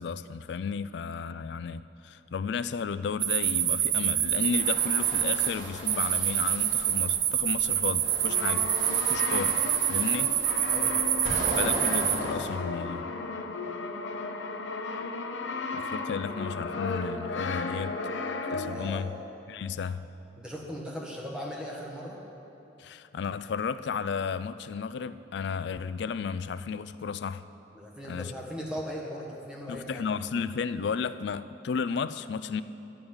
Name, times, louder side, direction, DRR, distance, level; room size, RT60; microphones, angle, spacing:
voice 1, 0.0-8.7 9.0-9.6 9.9-10.3 11.5-13.1 15.7-17.9 18.5-19.1 19.5-20.1 22.8-27.5 28.1-28.3 29.7-32.6, left 6 dB, 70° left, 14 dB, 0.3 m, -33 dB
sound 1, 3.2-12.2, right 10 dB, 65° right, 0.5 m, -27 dB
sound 2, 4.4-7.0 7.6-12.5, right 1 dB, 85° right, 3.3 m, -38 dB
Brass instrument, 8.2-19.0, left 3 dB, 85° left, 0.7 m, -35 dB
voice 2, 10.7-11.4 18.6-19.0 20.4-22.2 27.7-30.0, equal, 5° right, -3 dB, 1.5 m, -38 dB
11.0 x 6.2 x 8.7 m, 2.9 s
head